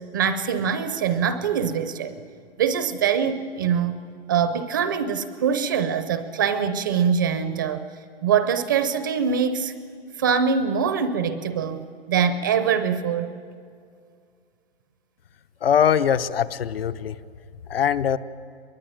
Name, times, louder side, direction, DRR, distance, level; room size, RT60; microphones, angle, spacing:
voice 1, 0.1-2.2 2.6-4.0 4.3-7.9 8.2-9.7 10.2-13.4, right 7 dB, 20° right, 11 dB, 0.5 m, -23 dB
voice 2, 15.6-17.2 17.7-18.2, left 8 dB, 60° left, 12 dB, 1.0 m, -21 dB
23.0 x 22.0 x 9.0 m, 2.3 s
hypercardioid pair, 165°, 33 cm